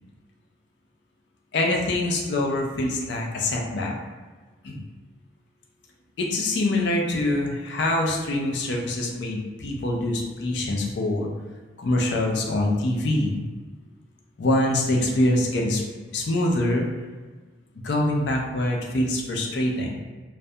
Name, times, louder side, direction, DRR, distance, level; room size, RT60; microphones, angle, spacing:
voice 1, 1.5-3.9 4.6-4.8 6.2-11.3 11.8-13.4 14.4-15.8 16.1-16.9 17.8-20.0, left 1 dB, 65° left, 0 dB, 0.4 m, -24 dB
2.3 x 2.1 x 2.7 m, 1.4 s
head